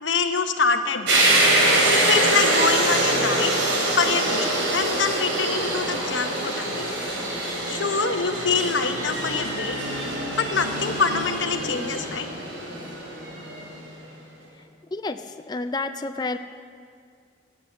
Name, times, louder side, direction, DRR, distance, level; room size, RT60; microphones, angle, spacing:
voice 1, 0.0-1.3 1.9-3.5 3.9-6.9 7.7-9.8 10.4-12.3, left 5 dB, 90° left, 8 dB, 1.0 m, -25 dB
sound 1, 1.1-13.8, right 1 dB, 85° right, 3.5 m, -24 dB
voice 2, 14.9-16.4, left 3 dB, 20° left, 9 dB, 0.3 m, -30 dB
16.0 x 8.4 x 8.4 m, 2.3 s
head